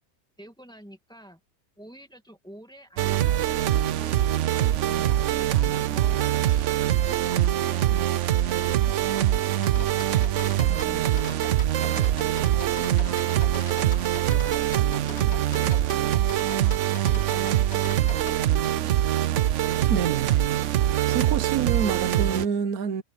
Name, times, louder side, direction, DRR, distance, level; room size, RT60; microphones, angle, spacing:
voice 1, 0.4-1.4 1.8-11.1 12.6-15.9 17.1-19.4, equal, 5° left, 2.1 m, -47 dB
sound 1, 3.0-22.5, right 12 dB, 65° right, 0.9 m, -23 dB
sound 2, 8.7-14.2, right 1 dB, 40° right, 8.2 m, -51 dB
sound 3, 9.6-18.4, left 4 dB, 90° left, 2.9 m, -41 dB
voice 2, 19.9-20.4 20.7-23.0, right 7 dB, 80° right, 1.4 m, -28 dB
omnidirectional pair, 1.5 m